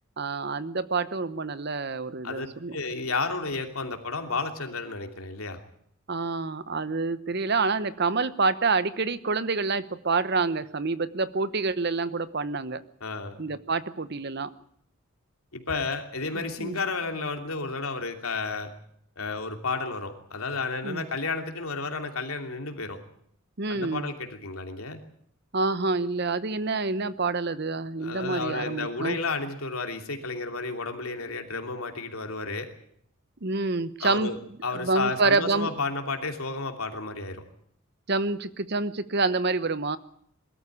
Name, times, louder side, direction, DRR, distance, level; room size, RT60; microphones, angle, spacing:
voice 1, 0.2-2.8 6.1-12.8 13.4-14.5 16.3-16.8 20.8-21.1 23.6-24.1 25.5-29.2 33.4-34.3 34.7-35.7 38.1-40.0, right 3 dB, 50° right, 15 dB, 1.0 m, -27 dB
voice 2, 2.7-5.6 13.0-13.4 15.5-18.7 19.2-23.0 23.7-25.0 28.0-32.7 34.0-37.4, left 3 dB, 90° left, 5 dB, 3.0 m, -32 dB
21.5 x 13.5 x 10.0 m, 0.67 s
head